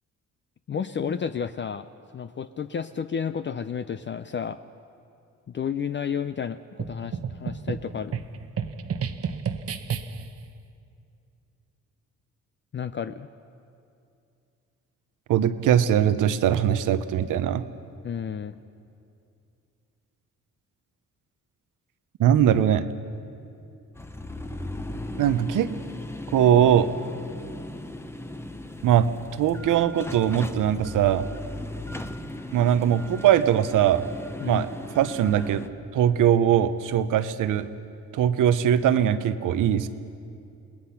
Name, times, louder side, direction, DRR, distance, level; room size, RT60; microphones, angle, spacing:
voice 1, 0.7-1.9 2.1-4.6 5.5-8.2 12.7-13.3 18.0-18.6 34.4-34.7, left 7 dB, 40° left, 10 dB, 0.6 m, -31 dB
sound 1, 6.8-10.4, right 7 dB, 50° right, 1.0 m, -32 dB
voice 2, 15.3-17.6 22.2-22.9 25.2-25.7 26.3-26.9 28.8-29.1 29.4-31.3 32.5-34.0 34.5-34.7 34.9-35.6 35.9-37.7 38.1-39.9, right 10 dB, 85° right, 12 dB, 0.9 m, -21 dB
sound 2, 23.9-35.7, left 1 dB, 10° left, 0.9 m, -37 dB
29.0 x 19.5 x 5.8 m, 2.5 s
cardioid pair, 95°, 31 cm